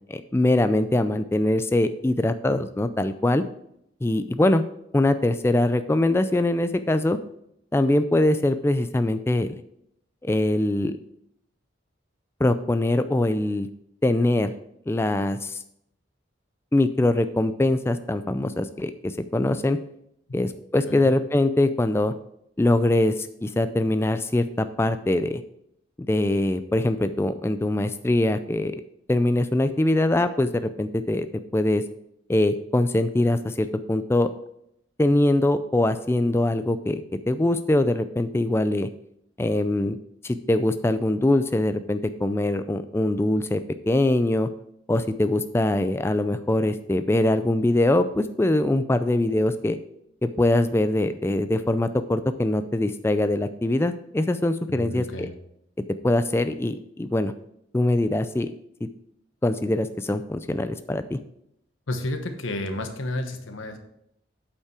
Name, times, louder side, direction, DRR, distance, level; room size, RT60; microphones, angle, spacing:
voice 1, 0.1-3.4 4.0-4.6 4.9-7.2 7.7-9.6 10.2-11.0 12.4-13.7 14.0-14.5 14.9-15.6 16.7-19.8 20.3-22.1 22.6-25.4 26.0-28.8 29.1-31.3 31.5-31.8 32.3-34.3 35.0-37.0 37.3-38.9 39.4-40.0 40.2-44.5 44.9-49.8 50.2-55.3 56.0-57.3 57.7-58.5 58.8-58.9 59.4-61.2, left 1 dB, 15° left, 10 dB, 0.3 m, -23 dB
voice 2, 54.7-55.3 61.9-63.8, left 1 dB, 90° left, 6 dB, 1.1 m, -31 dB
8.5 x 5.4 x 4.8 m, 0.75 s
head